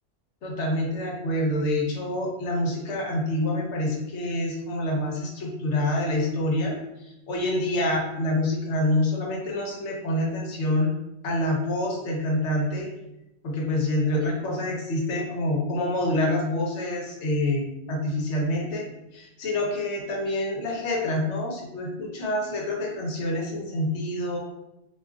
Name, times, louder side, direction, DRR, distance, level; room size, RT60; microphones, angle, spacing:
voice 1, 0.4-10.9 11.2-12.9 13.4-24.4, left 1 dB, 75° left, -1 dB, 1.0 m, -27 dB
2.4 x 2.4 x 3.4 m, 0.92 s
omnidirectional pair, 1.2 m